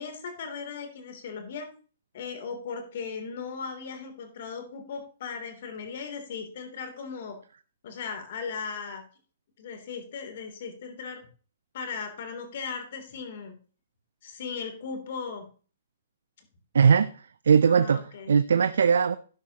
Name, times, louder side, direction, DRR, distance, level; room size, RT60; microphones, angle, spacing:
voice 1, 0.0-1.7 2.1-7.4 7.8-9.0 9.6-11.2 11.7-13.5 14.2-15.4 17.6-18.3, left 5 dB, 60° left, 3.2 m, -37 dB
voice 2, 16.7-17.1 17.5-19.2, right 6 dB, 75° right, 0.5 m, -20 dB
12.0 x 10.5 x 3.0 m
hypercardioid pair, 130°, 0 cm